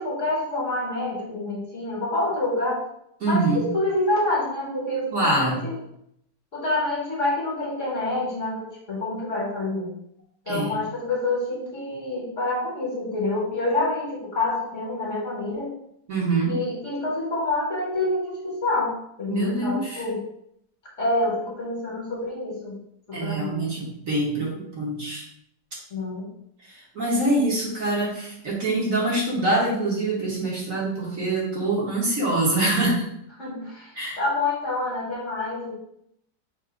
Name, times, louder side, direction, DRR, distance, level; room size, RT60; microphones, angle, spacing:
voice 1, 0.0-2.8 3.3-5.7 6.5-9.9 10.4-15.7 16.5-20.2 21.0-22.8 23.1-23.7 25.9-26.3 33.4-35.8, left 2 dB, 45° left, -4 dB, 1.4 m, -27 dB
voice 2, 3.2-3.6 5.1-5.6 10.5-10.7 16.1-16.6 19.3-20.0 23.1-25.2 26.9-33.1 33.9-34.2, right 2 dB, 50° right, -5 dB, 1.5 m, -24 dB
3.8 x 2.7 x 4.6 m, 0.74 s
omnidirectional pair, 1.9 m